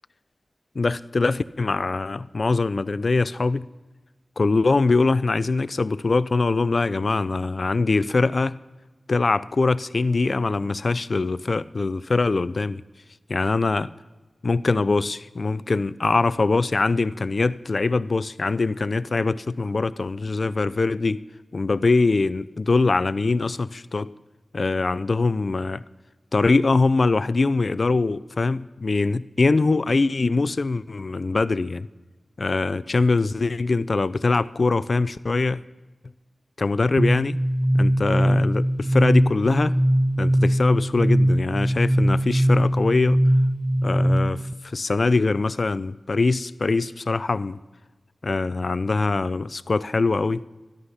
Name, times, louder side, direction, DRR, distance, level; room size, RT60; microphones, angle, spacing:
voice 1, 0.8-3.7 4.4-8.6 9.1-12.8 13.3-13.9 14.4-21.2 21.5-24.1 24.5-25.8 26.3-31.9 32.4-35.6 36.6-37.4 37.7-39.7 40.2-43.2 43.8-47.6 48.2-50.4, left 3 dB, 55° left, 17 dB, 0.4 m, -23 dB
sound 1, 37.0-44.5, equal, 10° right, 0.4 m, -21 dB
13.0 x 11.5 x 5.6 m, 1.2 s
wide cardioid pair, 90°, 0 cm